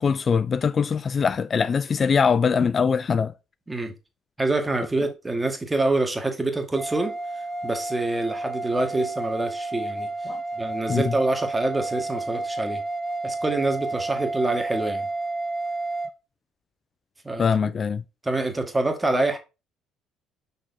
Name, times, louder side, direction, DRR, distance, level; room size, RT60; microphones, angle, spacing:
voice 1, 0.0-3.3 10.3-10.4 10.9-11.0 17.4-18.0, left 6 dB, 40° left, 0.3 m, -22 dB
voice 2, 4.4-7.1 7.6-10.1 10.6-12.8 13.2-15.1 17.3-17.7 18.2-19.4, right 2 dB, 15° right, 1.7 m, -26 dB
sound 1, 6.8-16.1, right 2 dB, ahead, 0.9 m, -31 dB
5.7 x 4.2 x 4.2 m
hypercardioid pair, 55°, 0 cm